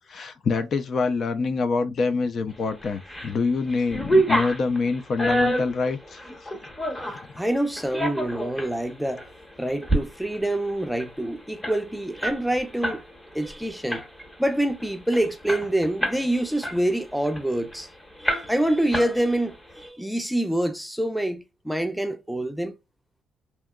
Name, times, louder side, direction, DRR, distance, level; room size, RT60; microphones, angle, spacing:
voice 1, 0.1-6.2 7.1-7.2, left 4 dB, 55° left, 0.4 m, -25 dB
sound 1, 2.8-3.3 3.7-7.3 7.8-8.7 9.2-9.3 9.7-10.0 10.3-10.4 10.7-13.0 13.3-13.5 13.9-14.3 14.8-14.9 15.1-16.3 16.6-17.8 18.2-18.7 18.9-19.6, right 1 dB, 15° left, 1.1 m, -27 dB
voice 2, 7.4-9.2 9.6-13.0 13.3-14.0 14.4-17.9 18.2-22.7, right 1 dB, ahead, 0.5 m, -26 dB
2.8 x 2.2 x 2.2 m
cardioid pair, 90°, 0 cm